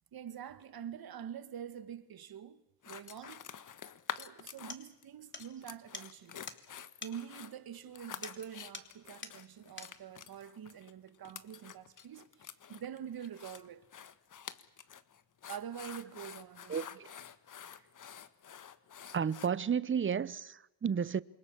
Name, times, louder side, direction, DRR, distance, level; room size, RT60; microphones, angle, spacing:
voice 1, 0.1-3.5 4.2-6.4 7.0-13.9 15.5-17.0, right 9 dB, 55° right, 2.0 m, -46 dB
sound 1, 2.8-5.0 5.4-19.5, left 8 dB, 45° left, 1.6 m, -48 dB
sound 2, 4.7-4.9 5.3-5.5 5.9-6.1 6.5-6.6 7.0-7.2 8.2-8.4 8.7-9.0 9.2-9.4 9.8-9.9, left 4 dB, 25° left, 3.4 m, -45 dB
voice 2, 16.7-17.1 19.1-21.2, right 7 dB, 25° right, 0.9 m, -32 dB
28.0 x 22.5 x 7.4 m
cardioid pair, 90°, 44 cm